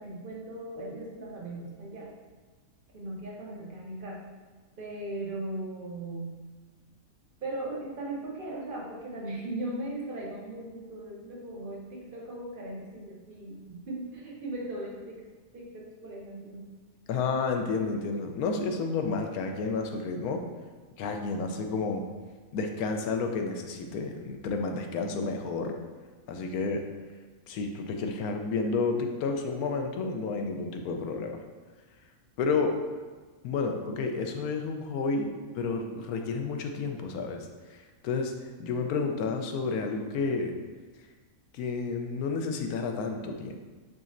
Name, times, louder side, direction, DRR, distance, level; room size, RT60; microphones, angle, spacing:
voice 1, 0.0-2.1 2.9-4.3 4.8-6.4 7.4-15.2 15.5-16.7, right 1 dB, 65° right, -2 dB, 0.5 m, -38 dB
voice 2, 17.1-20.4 21.0-22.0 22.5-25.8 26.3-26.8 27.5-31.4 32.4-32.7 33.4-35.3 35.5-37.5 37.7-38.3 38.6-40.6 41.5-43.6, left 4 dB, 75° left, 4 dB, 1.0 m, -30 dB
5.1 x 4.0 x 2.5 m, 1.4 s
omnidirectional pair, 1.6 m